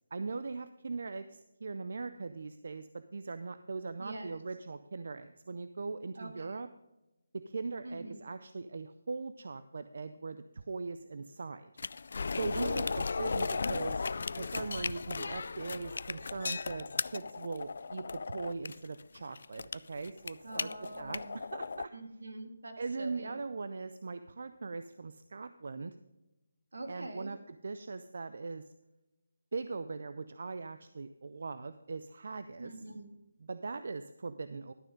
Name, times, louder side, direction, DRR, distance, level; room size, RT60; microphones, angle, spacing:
voice 1, 0.1-6.7 7.3-11.7 12.3-14.1 14.4-16.9 17.1-21.9 22.8-26.0 26.9-28.7 29.5-32.7 33.4-34.7, right 4 dB, 60° right, 12 dB, 0.5 m, -40 dB
voice 2, 4.0-4.4 6.1-6.6 7.8-8.2 12.5-12.9 20.4-21.4 21.9-23.4 26.7-27.3 32.6-33.2, right 2 dB, 85° right, 6 dB, 1.8 m, -44 dB
sound 1, 11.8-21.9, left 4 dB, 60° left, 0.3 m, -36 dB
12.0 x 6.6 x 5.2 m, 0.99 s
figure-of-eight pair, 165°, 0 cm